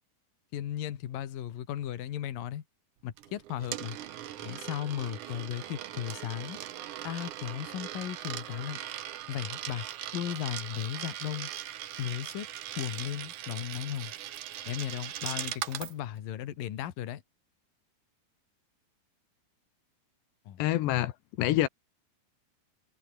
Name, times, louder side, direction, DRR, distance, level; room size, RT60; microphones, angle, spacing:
voice 1, 0.5-2.6 3.0-4.0 4.4-6.6 7.0-8.8 9.3-9.9 10.1-11.5 12.0-12.5 12.8-14.1 14.7-17.2 20.5-20.7, left 11 dB, 60° left, 3.3 m, -36 dB
Coin (dropping), 3.2-15.9, right 12 dB, 65° right, 2.2 m, -40 dB
voice 2, 20.6-21.7, left 15 dB, 85° left, 3.3 m, -27 dB
omnidirectional pair, 4.8 m